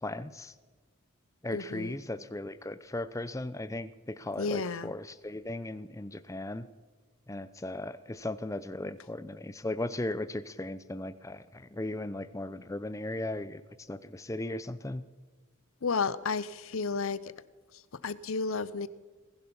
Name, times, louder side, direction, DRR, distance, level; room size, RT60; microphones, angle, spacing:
voice 1, 0.0-0.5 1.4-6.7 7.3-15.0, left 1 dB, 15° left, 14 dB, 0.6 m, -37 dB
voice 2, 1.5-2.0 4.4-4.9 15.8-17.3 17.7-18.9, left 4 dB, 70° left, 17 dB, 0.7 m, -32 dB
20.0 x 11.0 x 5.5 m, 1.4 s
head